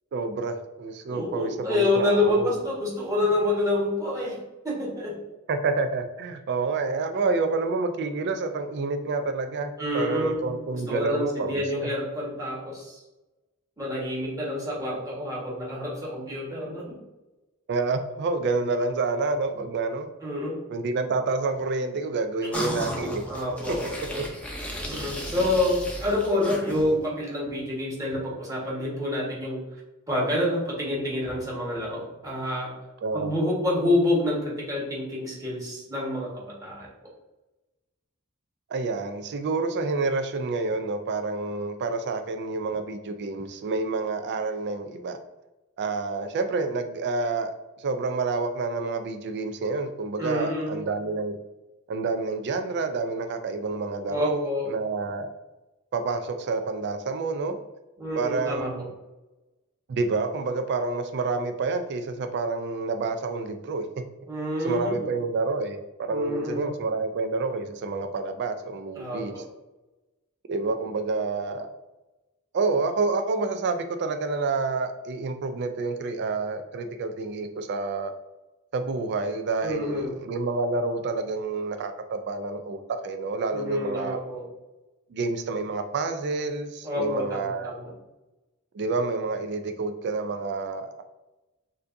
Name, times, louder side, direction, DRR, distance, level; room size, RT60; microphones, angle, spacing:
voice 1, 0.1-2.6 5.5-11.9 17.7-20.1 20.7-23.2 23.7-23.8 24.2-24.3 33.0-33.3 38.7-45.2 45.8-47.5 47.8-51.4 51.9-55.3 55.9-57.6 58.2-58.9 59.9-63.9 64.6-69.4 70.5-71.7 72.5-78.1 78.7-84.2 85.1-87.7 88.7-91.0, right 3 dB, 50° right, 7 dB, 0.4 m, -28 dB
voice 2, 1.1-4.4 4.6-5.2 9.8-13.0 13.8-17.0 20.2-20.6 23.3-24.2 24.9-29.6 30.1-32.7 33.1-36.9 50.2-50.8 54.1-54.7 58.0-58.7 64.3-64.9 66.1-66.7 69.0-69.4 79.6-80.2 83.5-84.4 86.8-87.9, left 1 dB, 15° right, -6 dB, 1.4 m, -28 dB
sound 1, 22.5-27.1, equal, 5° left, 0.6 m, -34 dB
6.5 x 2.6 x 2.6 m, 1.0 s
head